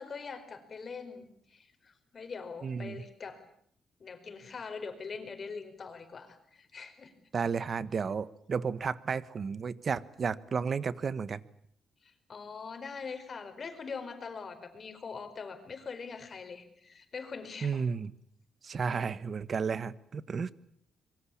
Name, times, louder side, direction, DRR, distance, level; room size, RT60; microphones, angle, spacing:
voice 1, 0.0-3.4 4.0-7.1 12.0-17.9, left 5 dB, 40° left, 8 dB, 4.9 m, -43 dB
voice 2, 2.6-3.0 7.3-11.4 17.6-18.1 18.6-20.5, right 5 dB, 45° right, 16 dB, 1.2 m, -32 dB
25.0 x 22.5 x 8.6 m, 0.66 s
cardioid pair, 115°, 0 cm